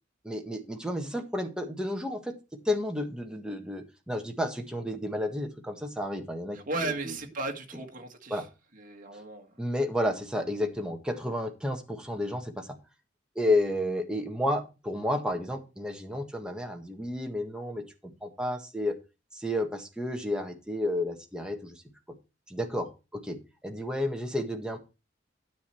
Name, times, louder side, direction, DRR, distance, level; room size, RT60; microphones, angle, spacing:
voice 1, 0.2-2.3 2.7-7.2 8.3-8.4 9.6-12.7 13.4-19.0 19.3-21.8 22.5-24.8, left 1 dB, 5° right, 3 dB, 1.6 m, -31 dB
voice 2, 6.5-8.4 8.7-9.5, right 2 dB, 45° right, 4 dB, 1.8 m, -35 dB
9.7 x 7.5 x 4.4 m, 0.29 s
head